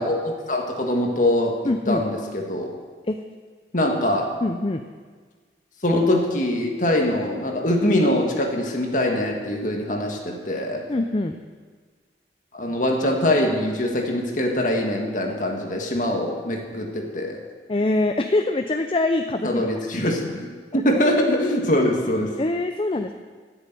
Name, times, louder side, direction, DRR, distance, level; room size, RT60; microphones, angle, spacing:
voice 1, 0.0-1.6 1.9-2.7 3.7-4.3 5.8-10.8 12.5-17.4 19.4-22.4, left 1 dB, 45° left, 2 dB, 1.9 m, -23 dB
voice 2, 1.7-2.0 3.1-3.2 4.4-4.8 10.9-11.4 17.7-19.7 20.0-20.1 20.7-20.8 22.4-23.1, left 2 dB, 30° left, 6 dB, 0.5 m, -24 dB
12.5 x 7.0 x 9.3 m, 1.5 s
head